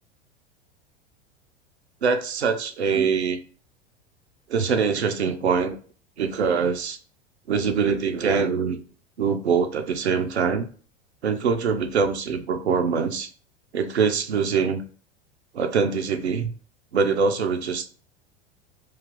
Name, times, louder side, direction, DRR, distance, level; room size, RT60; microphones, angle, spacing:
voice 1, 2.0-3.4 4.5-5.8 6.2-7.0 7.5-8.8 9.2-10.7 11.2-13.3 13.7-14.8 15.5-16.5 16.9-17.9, right 5 dB, 85° right, 7 dB, 0.6 m, -23 dB
3.2 x 2.4 x 3.7 m, 0.41 s
figure-of-eight pair, 85°, 32 cm